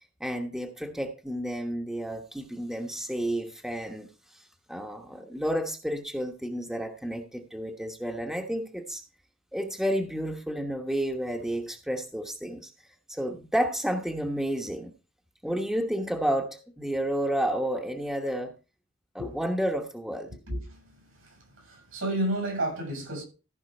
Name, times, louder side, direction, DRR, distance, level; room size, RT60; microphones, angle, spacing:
voice 1, 0.2-9.0 9.5-12.7 13.1-14.9 15.4-18.5 19.1-20.3, equal, 5° right, 1.1 m, -31 dB
voice 2, 21.7-23.2, right 1 dB, 85° right, 7.8 m, -30 dB
14.5 x 5.4 x 5.3 m
head